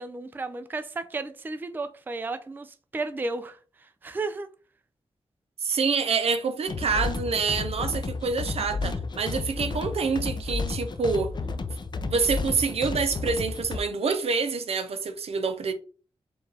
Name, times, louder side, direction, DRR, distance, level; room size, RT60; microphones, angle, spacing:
voice 1, 0.0-4.5, right 3 dB, 20° right, 0.3 m, -34 dB
voice 2, 5.6-11.3 12.1-15.7, right 5 dB, 75° right, 0.6 m, -27 dB
sound 1, 6.7-13.8, left 3 dB, 45° left, 0.4 m, -32 dB
4.5 x 2.4 x 3.3 m
wide cardioid pair, 115°, 10 cm